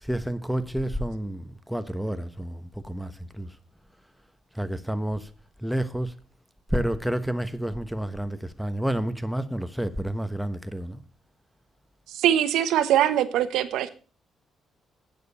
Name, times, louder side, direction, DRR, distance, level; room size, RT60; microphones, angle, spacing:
voice 1, 0.0-3.5 4.5-5.3 5.6-6.1 6.7-11.0, right 1 dB, ahead, 1.2 m, -30 dB
voice 2, 12.1-13.9, right 11 dB, 85° right, 1.1 m, -22 dB
12.0 x 9.3 x 4.2 m
cardioid pair, 90°, 0 cm